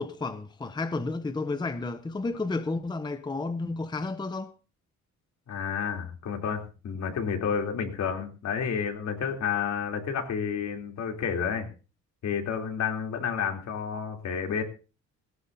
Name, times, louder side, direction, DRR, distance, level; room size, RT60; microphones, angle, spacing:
voice 1, 0.0-4.5, left 3 dB, 15° left, 0.7 m, -31 dB
voice 2, 5.5-11.7 12.2-14.6, left 7 dB, 65° left, 3.3 m, -30 dB
18.0 x 17.0 x 2.7 m
cardioid pair, 115°, 31 cm